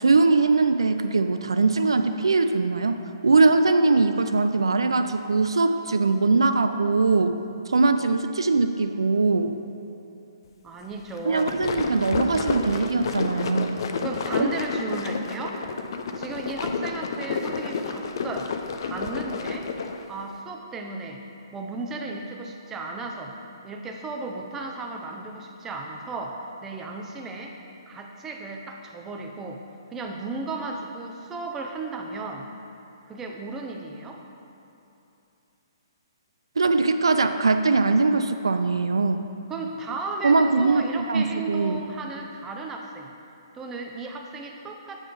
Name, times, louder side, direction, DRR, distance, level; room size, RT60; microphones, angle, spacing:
voice 1, 0.0-7.4 7.7-9.5 11.3-13.8 14.4-14.5 36.6-39.2 40.2-41.8, right 3 dB, 85° right, 8 dB, 0.3 m, -21 dB
voice 2, 10.6-11.6 14.0-15.6 16.2-18.5 18.8-19.7 20.1-21.2 21.5-23.3 23.6-27.6 27.9-29.6 29.9-32.5 33.1-34.2 39.5-43.1 43.5-45.0, right 3 dB, 15° right, 1 dB, 0.6 m, -35 dB
sound 1, 11.1-20.0, left 4 dB, 60° left, 0.5 m, -30 dB
7.9 x 3.7 x 5.0 m, 2.8 s
hypercardioid pair, 135°, 3 cm